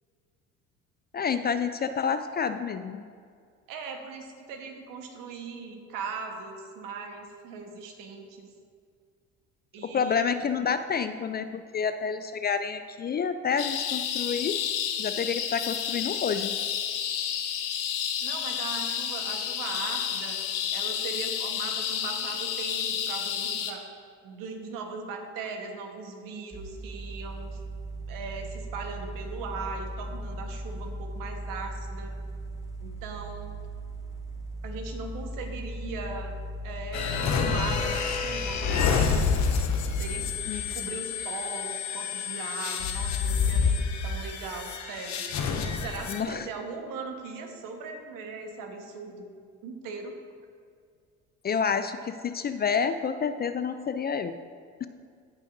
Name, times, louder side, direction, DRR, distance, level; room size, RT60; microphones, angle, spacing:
voice 1, 1.1-3.0 9.8-14.6 15.0-16.6 40.5-40.9 46.1-46.5 51.4-54.4 54.8-54.9, left 6 dB, 30° left, 11 dB, 0.4 m, -29 dB
voice 2, 3.7-8.5 9.7-10.2 18.2-20.4 20.7-23.8 24.2-27.6 28.1-32.1 32.8-33.5 34.6-36.3 36.6-39.4 40.0-45.2 45.8-49.3 49.6-50.1, right 4 dB, 70° right, 3 dB, 1.3 m, -39 dB
sound 1, 13.6-23.7, left 9 dB, 90° left, 0.7 m, -31 dB
sound 2, 26.5-39.9, equal, 10° right, 1.4 m, -38 dB
sound 3, 36.9-46.2, left 5 dB, 55° left, 0.9 m, -28 dB
16.0 x 5.6 x 2.7 m, 2.1 s
hypercardioid pair, 65°, 35 cm